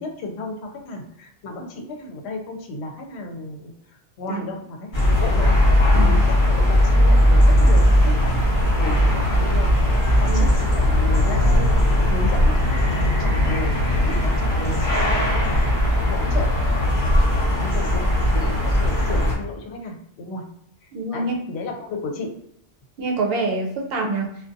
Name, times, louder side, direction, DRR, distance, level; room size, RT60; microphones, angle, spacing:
voice 1, 0.0-5.6 5.9-9.8 10.2-11.8 12.1-13.8 14.0-20.4 20.8-22.3, left 2 dB, 70° left, 2 dB, 0.8 m, -34 dB
sound 1, 4.9-19.3, left 1 dB, 45° left, 1.1 m, -18 dB
voice 2, 20.9-21.4 23.0-24.3, right 3 dB, 65° right, 1 dB, 0.8 m, -25 dB
2.5 x 2.2 x 2.5 m, 0.72 s
omnidirectional pair, 1.2 m